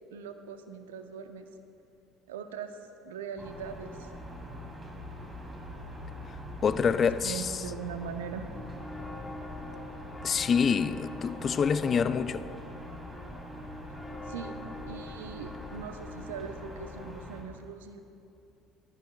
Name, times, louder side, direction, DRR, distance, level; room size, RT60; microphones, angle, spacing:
voice 1, 0.1-1.5 2.3-2.8 3.0-4.1 7.2-8.5 14.3-14.6 14.9-18.0, right 6 dB, 75° right, 0.7 m, -40 dB
sound 1, 3.4-17.4, equal, 20° right, 2.8 m, -43 dB
voice 2, 6.6-7.5 10.2-12.5, left 6 dB, 40° left, 0.4 m, -26 dB
sound 2, 8.5-17.2, left 2 dB, 15° left, 1.2 m, -45 dB
18.0 x 13.5 x 2.3 m
hypercardioid pair, 60°, 0 cm